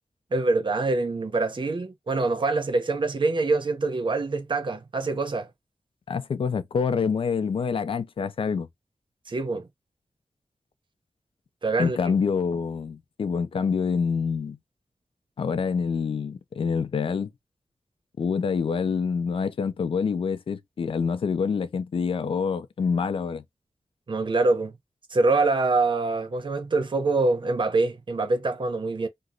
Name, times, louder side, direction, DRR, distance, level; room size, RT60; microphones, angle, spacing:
voice 1, 0.3-5.5 9.3-9.7 11.6-12.1 24.1-24.7 25.1-29.1, right 3 dB, 60° right, 0.8 m, -25 dB
voice 2, 6.1-8.7 11.8-14.6 15.4-17.3 18.2-23.4, left 5 dB, 75° left, 0.4 m, -26 dB
2.9 x 2.1 x 3.7 m
wide cardioid pair, 70°, 9 cm